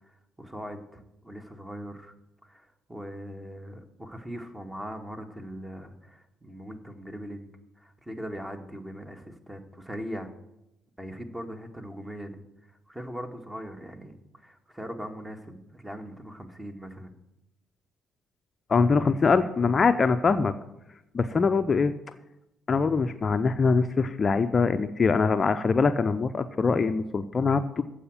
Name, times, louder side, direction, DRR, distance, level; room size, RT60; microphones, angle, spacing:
voice 1, 0.0-2.1 2.4-7.5 7.8-10.3 11.0-17.1, equal, 10° right, 6 dB, 1.8 m, -40 dB
voice 2, 18.7-20.5 21.1-21.9 22.7-27.8, left 4 dB, 35° left, 10 dB, 0.6 m, -23 dB
15.0 x 5.0 x 8.9 m, 0.89 s
figure-of-eight pair, 45°, 0 cm